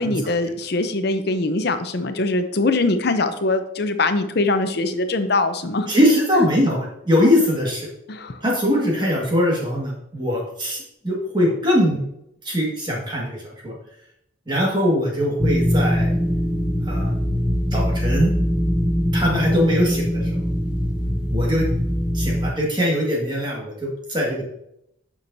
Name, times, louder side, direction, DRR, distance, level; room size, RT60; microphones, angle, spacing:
voice 1, 0.0-5.9 6.4-6.5 8.1-8.4, left 2 dB, 55° left, 9 dB, 0.6 m, -22 dB
voice 2, 5.9-7.9 8.4-12.0 12.4-13.7 14.5-16.1 16.9-17.1 17.7-18.3 19.1-20.4 21.3-21.7 22.1-24.4, equal, 25° right, -2 dB, 1.7 m, -21 dB
sound 1, 15.4-22.5, equal, 5° right, 0.6 m, -22 dB
8.5 x 6.1 x 2.7 m, 0.77 s
head